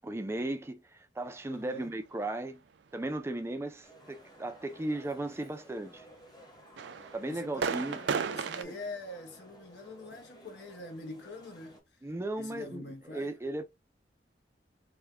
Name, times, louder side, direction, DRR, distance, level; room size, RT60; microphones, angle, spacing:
voice 1, 0.0-2.6 2.9-6.1 7.1-8.0 8.6-8.8 12.0-13.6, right 1 dB, 15° right, 0.4 m, -36 dB
voice 2, 1.5-1.9 7.2-11.8 12.4-13.4, left 1 dB, 70° left, 0.9 m, -44 dB
sound 1, 3.8-11.8, equal, 20° left, 1.1 m, -55 dB
sound 2, 6.8-8.6, right 5 dB, 80° right, 0.4 m, -33 dB
3.4 x 2.2 x 3.2 m
head